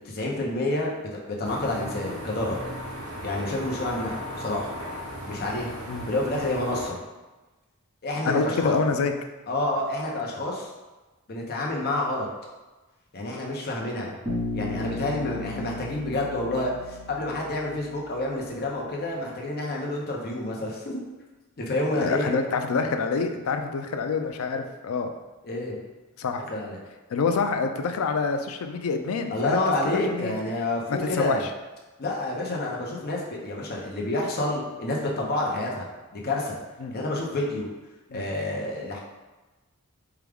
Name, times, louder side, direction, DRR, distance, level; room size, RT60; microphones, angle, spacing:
voice 1, 0.0-2.6 3.2-4.7 5.3-5.7 6.1-7.0 8.0-8.7 9.5-10.7 11.3-12.3 13.1-14.2 14.5-21.0 21.6-22.4 25.4-25.8 26.5-26.9 29.3-31.4 32.0-35.9 36.1-36.5 36.9-37.7 38.1-39.0, left 2 dB, 45° left, -2 dB, 0.7 m, -29 dB
sound 1, 1.4-6.9, equal, 75° right, 0.7 m, -37 dB
voice 2, 8.2-9.1 21.9-25.1 26.2-26.4 27.1-29.6 29.9-30.3 30.9-31.4 36.8-36.9 38.1-38.2, left 4 dB, 70° left, 6 dB, 0.4 m, -26 dB
Bass guitar, 14.2-18.3, left 2 dB, 25° right, 1.1 m, -35 dB
4.7 x 2.3 x 3.4 m, 1.2 s
head